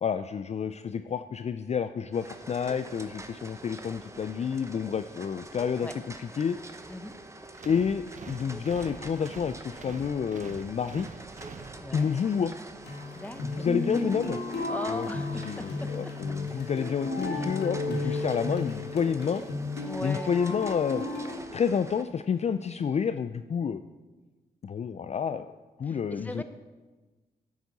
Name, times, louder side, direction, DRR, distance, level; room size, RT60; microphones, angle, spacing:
voice 1, 0.0-6.6 7.6-11.1 11.9-12.5 13.4-14.4 14.9-15.1 15.4-19.4 20.0-21.0 21.5-23.8 24.6-25.5 25.8-26.4, left 7 dB, 40° left, 11 dB, 0.4 m, -29 dB
sound 1, 2.1-22.0, right 2 dB, 15° right, 0.9 m, -46 dB
sound 2, 7.5-12.3, right 5 dB, 50° right, 0.7 m, -46 dB
voice 2, 11.8-12.1 13.1-13.7 14.7-16.0 18.0-18.3 19.8-20.3 25.9-26.4, left 1 dB, 10° left, 10 dB, 0.8 m, -38 dB
sound 3, 12.8-21.3, left 2 dB, 80° left, 1.8 m, -33 dB
11.0 x 8.2 x 4.1 m, 1.2 s
cardioid pair, 65°, 17 cm